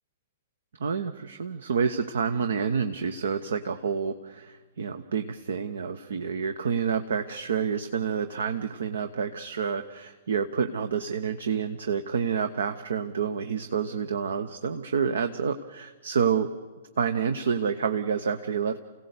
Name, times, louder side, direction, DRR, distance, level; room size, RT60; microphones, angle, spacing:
voice 1, 0.8-16.5 17.0-18.8, right 6 dB, 60° right, 10 dB, 0.8 m, -28 dB
29.0 x 17.0 x 6.8 m, 1.3 s
figure-of-eight pair, 110°, 0 cm